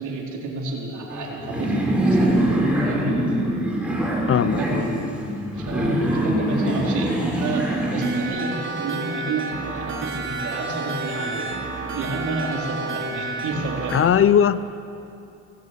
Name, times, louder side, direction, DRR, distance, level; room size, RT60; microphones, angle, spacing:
voice 1, 0.0-2.4 2.8-3.2 5.6-11.5 11.9-14.0, right 3 dB, 75° right, -1 dB, 4.0 m, -30 dB
sound 1, 1.1-8.2, right 1 dB, 5° right, 5.4 m, -23 dB
voice 2, 4.3-4.9 13.9-14.6, left 9 dB, 45° left, 16 dB, 0.7 m, -18 dB
sound 2, 8.0-14.0, right 3 dB, 40° right, 3.5 m, -30 dB
18.5 x 17.0 x 8.3 m, 2.7 s
cardioid pair, 90°, 30 cm